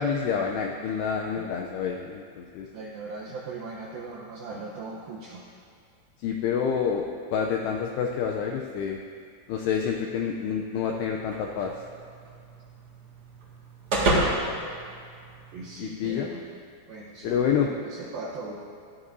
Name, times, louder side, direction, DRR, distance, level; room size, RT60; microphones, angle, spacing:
voice 1, 0.0-2.7 6.2-7.1 7.3-9.0 9.5-11.7 15.8-16.3 17.2-17.7, left 7 dB, 90° left, 1 dB, 2.3 m, -28 dB
voice 2, 2.7-5.5 15.5-16.4 16.9-18.6, right 3 dB, 85° right, -3 dB, 2.1 m, -39 dB
sound 1, 11.3-15.7, right 1 dB, 50° right, 1.7 m, -30 dB
19.0 x 13.0 x 2.7 m, 2.2 s
omnidirectional pair, 5.5 m